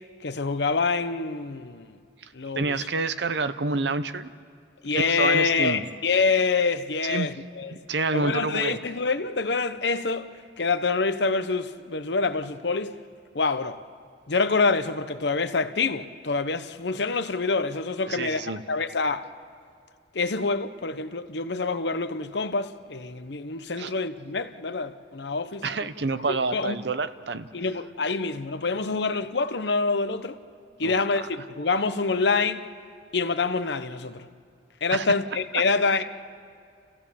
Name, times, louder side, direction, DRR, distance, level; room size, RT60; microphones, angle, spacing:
voice 1, 0.2-2.0 2.3-2.9 4.8-7.8 8.1-10.3 10.6-12.9 13.3-13.8 14.3-19.3 20.1-25.9 26.3-26.8 27.5-30.4 30.8-32.6 33.1-34.3 34.8-36.0, left 4 dB, 75° left, 0.9 m, -26 dB
voice 2, 2.2-4.3 4.9-5.9 7.0-7.3 7.7-8.8 18.1-18.6 23.8-23.9 25.6-27.5 30.8-31.0 34.9-35.1, right 3 dB, 75° right, 0.8 m, -28 dB
29.5 x 15.5 x 7.1 m
head